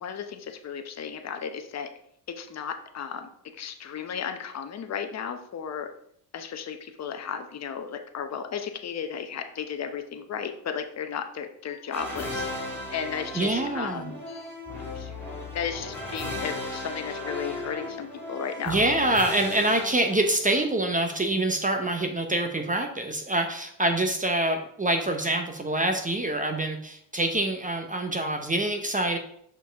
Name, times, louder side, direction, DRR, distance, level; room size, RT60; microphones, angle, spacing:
voice 1, 0.0-1.9 2.4-5.9 6.3-12.5 12.9-14.6 14.9-15.1 15.5-18.8, left 7 dB, 35° left, 7 dB, 0.9 m, -34 dB
sound 1, 11.9-20.8, left 2 dB, 5° left, 2.5 m, -36 dB
voice 2, 13.3-14.1 18.7-29.2, right 1 dB, 15° right, 4 dB, 0.9 m, -26 dB
6.0 x 4.6 x 4.6 m, 0.69 s
supercardioid pair, 75°, 45 cm